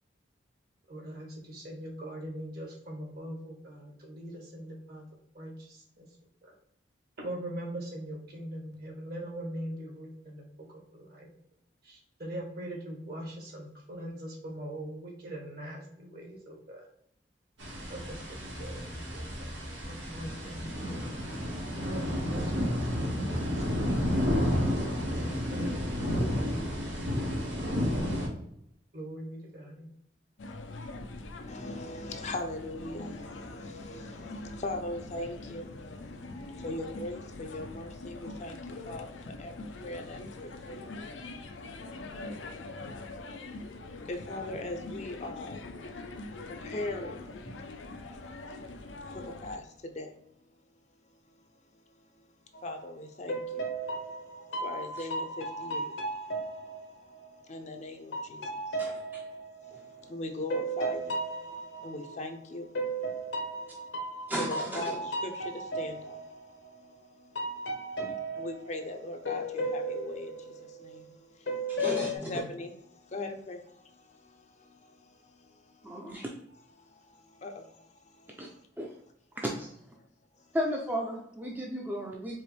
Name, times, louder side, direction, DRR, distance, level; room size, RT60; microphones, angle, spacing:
voice 1, 0.9-5.0 5.3-6.1 6.4-6.5 7.2-11.3 11.8-16.9 17.9-19.5 19.8-21.1 21.8-24.2 25.0-27.1 27.6-28.3 28.9-29.9, right 1 dB, 55° right, 0 dB, 1.5 m, -42 dB
sound 1, 17.6-28.3, equal, 90° right, 1.7 m, -31 dB
sound 2, 30.4-49.6, left 2 dB, 90° left, 0.6 m, -43 dB
voice 2, 31.5-40.9 41.5-41.8 42.2-42.4 44.1-45.6 46.5-47.3 48.9-50.2 52.6-53.6 54.4-55.9 56.7-56.8 57.5-58.8 59.6-62.9 63.8-63.9 64.4-67.9 68.3-76.0 76.8-78.6 80.4-80.5, left 2 dB, 40° left, 5 dB, 0.5 m, -41 dB
sound 3, 52.5-52.8 53.3-57.6 58.1-62.3 62.7-67.0 67.3-71.1 71.5-72.2, right 1 dB, 75° left, 0.9 m, -36 dB
voice 3, 58.8-59.2 64.3-64.9 68.0-68.2 71.7-72.3 75.8-76.3 78.4-78.5 78.8-78.9 79.4-79.7 80.5-82.4, equal, 10° right, -1 dB, 0.5 m, -34 dB
4.6 x 3.0 x 3.2 m, 0.74 s
head